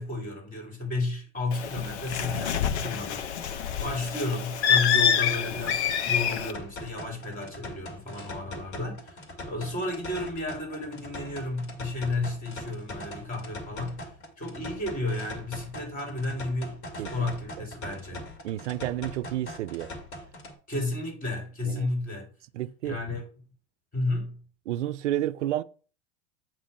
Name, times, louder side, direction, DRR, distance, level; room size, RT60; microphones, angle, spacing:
voice 1, 0.0-14.1 14.4-18.2 20.7-22.3 22.8-23.3 23.9-24.4, left 2 dB, 25° left, 3.7 m, -32 dB
Bird, 1.5-6.5, left 8 dB, 65° left, 0.9 m, -27 dB
sound 1, 6.5-20.5, left 1 dB, 40° left, 2.0 m, -41 dB
voice 2, 18.1-19.9 21.7-21.9 22.5-23.0 24.7-25.6, right 13 dB, 80° right, 0.5 m, -31 dB
8.3 x 3.1 x 5.6 m
hypercardioid pair, 100°, 35 cm